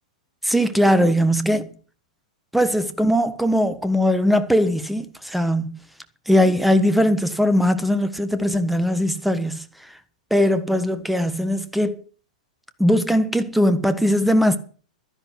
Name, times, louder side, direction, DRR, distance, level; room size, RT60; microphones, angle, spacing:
voice 1, 0.4-1.7 2.5-5.8 6.3-9.6 10.3-12.0 12.8-14.6, equal, ahead, 1.3 m, -20 dB
12.5 x 10.5 x 6.2 m
figure-of-eight pair, 100°, 4 cm